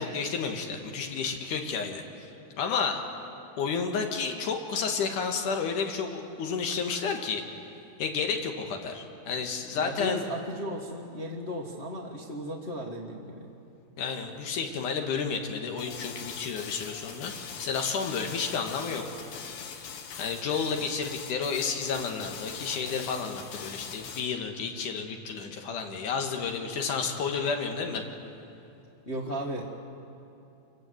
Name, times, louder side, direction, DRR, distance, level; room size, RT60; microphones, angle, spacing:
voice 1, 0.0-2.3 2.6-3.0 3.6-7.4 8.0-10.2 14.0-19.0 20.2-28.0, left 5 dB, 70° left, 4 dB, 2.9 m, -31 dB
voice 2, 9.7-13.5 29.1-29.7, equal, 50° left, -3 dB, 0.7 m, -35 dB
sound 1, 15.8-24.3, left 6 dB, 85° left, 3.2 m, -42 dB
27.5 x 17.5 x 7.9 m, 2.8 s
omnidirectional pair, 4.0 m